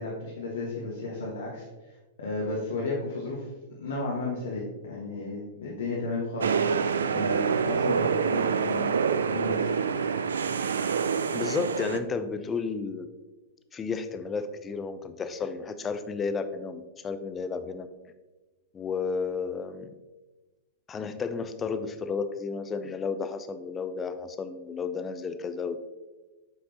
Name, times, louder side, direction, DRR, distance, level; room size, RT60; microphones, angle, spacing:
voice 1, 0.0-1.7 2.2-3.5 3.8-6.5 7.1-8.9 9.3-9.7, left 3 dB, 70° left, -4 dB, 1.6 m, -33 dB
sound 1, 6.4-12.0, right 6 dB, 70° right, 0.4 m, -26 dB
voice 2, 11.3-13.1 13.7-17.9 18.7-19.9 20.9-25.8, left 5 dB, 20° left, 10 dB, 0.6 m, -32 dB
8.5 x 5.2 x 2.9 m, 1.2 s
figure-of-eight pair, 100°, 0 cm